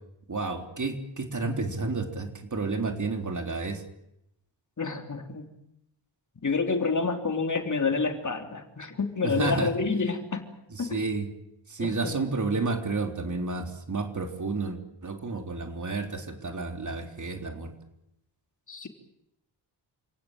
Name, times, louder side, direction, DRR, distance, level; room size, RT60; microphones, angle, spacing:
voice 1, 0.3-3.8 9.2-9.7 10.7-11.3 11.7-17.7, right 3 dB, 40° right, 5 dB, 3.8 m, -31 dB
voice 2, 4.8-5.5 6.4-10.5 10.8-11.1 11.8-12.3 18.7-18.9, left 4 dB, 40° left, 5 dB, 3.4 m, -28 dB
28.5 x 18.5 x 9.0 m, 0.81 s
wide cardioid pair, 155°, 44 cm